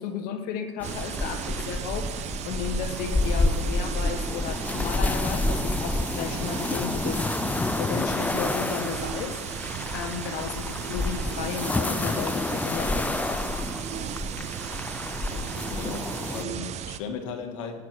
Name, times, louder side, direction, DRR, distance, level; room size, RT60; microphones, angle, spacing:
voice 1, 0.0-7.3 7.8-9.4 9.9-13.7, left 7 dB, 70° left, 8 dB, 1.5 m, -34 dB
sound 1, 0.8-16.4, left 2 dB, 10° left, 0.5 m, -29 dB
sound 2, 0.8-17.0, right 10 dB, 45° right, 0.8 m, -36 dB
voice 2, 15.2-17.8, left 5 dB, 90° left, 5 dB, 1.8 m, -37 dB
18.0 x 9.5 x 4.7 m, 1.5 s
supercardioid pair, 105°, 16 cm